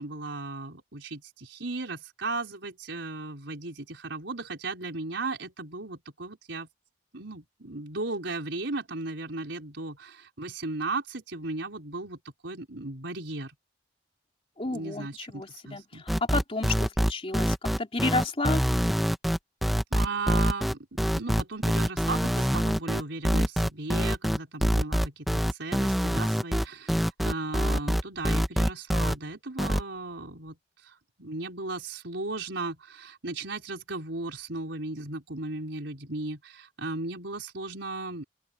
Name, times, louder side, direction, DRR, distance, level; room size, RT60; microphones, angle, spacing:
voice 1, 0.0-6.7 7.1-13.5 14.6-16.0 19.9-30.5 30.8-38.2, right 3 dB, 80° right, 4.7 m, -36 dB
voice 2, 14.6-16.0 16.3-18.6, left 2 dB, 30° left, 3.3 m, -31 dB
sound 1, 16.1-29.1 29.6-29.8, equal, ahead, 1.1 m, -25 dB
open air
head